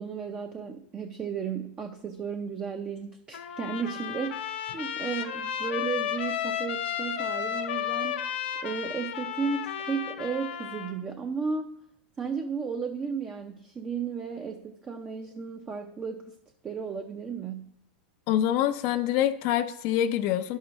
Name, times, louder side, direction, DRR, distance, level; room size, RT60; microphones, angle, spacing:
voice 1, 0.0-8.2 8.6-11.7 12.2-16.3 16.6-17.7, right 6 dB, 20° right, 5 dB, 0.5 m, -34 dB
Trumpet, 3.3-10.9, left 9 dB, 80° left, 0.8 m, -33 dB
voice 2, 18.3-20.6, left 11 dB, 50° left, 9 dB, 0.5 m, -25 dB
11.0 x 6.4 x 3.0 m, 0.75 s
supercardioid pair, 125°, 6 cm